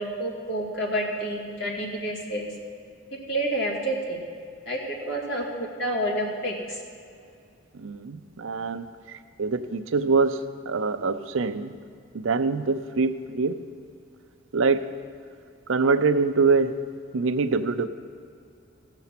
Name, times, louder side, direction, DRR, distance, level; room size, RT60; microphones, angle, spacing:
voice 1, 0.0-2.5 3.3-4.2 4.7-6.8, right 1 dB, 65° left, -3 dB, 2.5 m, -29 dB
voice 2, 7.7-11.7 12.1-13.6 14.5-14.9 15.7-17.9, right 4 dB, 75° right, 11 dB, 0.5 m, -24 dB
16.5 x 6.9 x 5.9 m, 2.3 s
head